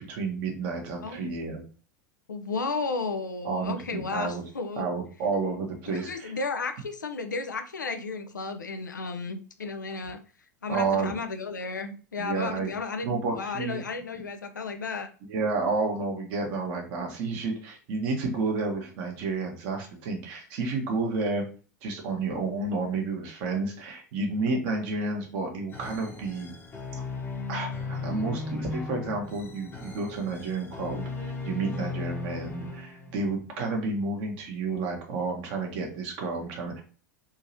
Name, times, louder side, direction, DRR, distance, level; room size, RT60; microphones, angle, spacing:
voice 1, 0.0-1.6 3.4-4.4 4.8-6.3 10.7-11.1 12.2-12.7 13.0-13.8 15.3-21.4 21.8-26.5 27.5-36.8, right 3 dB, 50° right, 1 dB, 1.2 m, -30 dB
voice 2, 1.0-1.3 2.3-4.9 5.9-10.2 10.6-15.1, left 4 dB, 80° left, 7 dB, 0.5 m, -33 dB
sound 1, 25.7-33.4, left 3 dB, 20° left, 0.9 m, -36 dB
3.6 x 2.8 x 2.8 m, 0.39 s
figure-of-eight pair, 85°, 10 cm